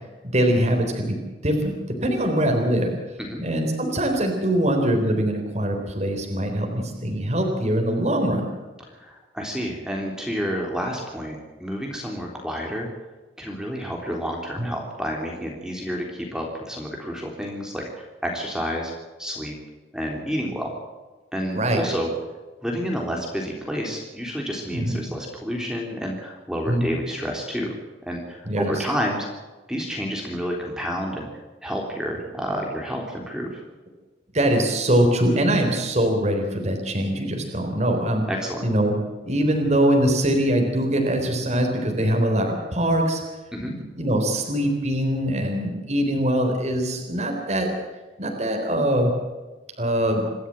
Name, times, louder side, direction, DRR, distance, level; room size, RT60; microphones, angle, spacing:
voice 1, 0.3-1.2 1.4-2.9 3.4-8.5 14.6-14.7 21.5-21.8 24.7-25.0 26.7-26.9 28.5-28.8 34.3-38.3 38.6-38.9 39.2-43.2 43.6-47.7 48.2-49.1 49.8-50.3, right 1 dB, 40° right, 3 dB, 3.8 m, -22 dB
voice 2, 8.9-12.9 13.4-18.9 19.2-19.6 19.9-20.7 21.3-22.1 22.6-27.8 28.0-29.3 29.7-31.3 31.6-33.6 38.3-38.6 43.5-43.7, equal, 5° right, 0 dB, 3.4 m, -29 dB
27.0 x 13.0 x 7.6 m, 1.3 s
head